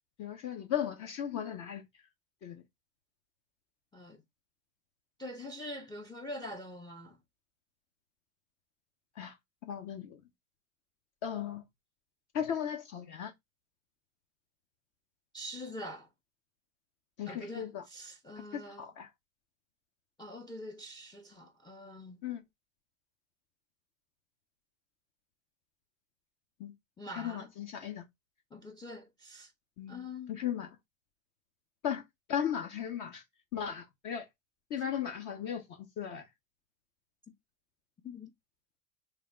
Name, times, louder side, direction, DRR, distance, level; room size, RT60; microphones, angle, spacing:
voice 1, 0.2-1.8 2.4-2.6 9.2-9.4 9.7-10.2 11.2-11.6 12.3-13.3 17.2-17.8 18.5-19.1 22.2-22.4 26.6-26.7 27.1-28.1 29.8-30.8 31.8-32.0 32.3-33.2 33.5-34.3 34.7-36.2, left 9 dB, 50° left, 1.0 m, -36 dB
voice 2, 5.2-7.2 15.3-16.1 17.3-18.9 20.2-22.2 27.0-27.5 28.5-29.5 29.9-30.4 38.0-38.3, left 1 dB, 10° left, 0.5 m, -44 dB
3.3 x 2.5 x 4.3 m
hypercardioid pair, 100°, 41 cm